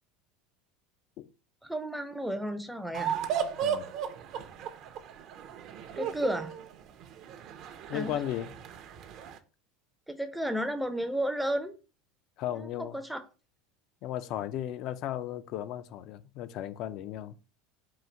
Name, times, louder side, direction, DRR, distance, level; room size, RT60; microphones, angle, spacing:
voice 1, 1.6-3.2 6.0-6.5 7.9-8.1 10.1-11.8 12.5-13.2, equal, 5° right, 0.5 m, -32 dB
sound 1, 2.9-9.4, right 8 dB, 50° right, 0.6 m, -36 dB
voice 2, 7.9-8.5 12.4-13.0 14.0-17.5, left 11 dB, 55° left, 0.4 m, -35 dB
3.9 x 2.5 x 4.3 m
supercardioid pair, 125°, 0 cm